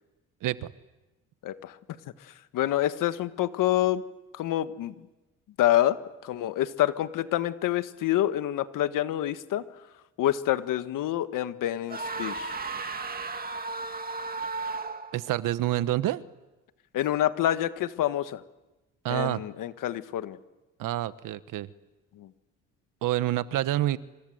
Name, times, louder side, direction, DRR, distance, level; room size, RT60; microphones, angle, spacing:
voice 1, 0.4-0.7 15.1-16.2 19.0-19.4 20.8-21.7 23.0-24.0, right 14 dB, 75° right, 14 dB, 1.2 m, -27 dB
voice 2, 1.4-1.8 2.2-4.0 4.3-4.9 5.6-9.6 10.2-12.5 16.9-18.4 19.1-20.4 22.2-22.3, left 13 dB, 75° left, 11 dB, 1.6 m, -27 dB
sound 1, 11.9-15.2, right 3 dB, 30° right, 2.2 m, -34 dB
28.5 x 26.5 x 8.0 m, 1.1 s
cardioid pair, 85°, 32 cm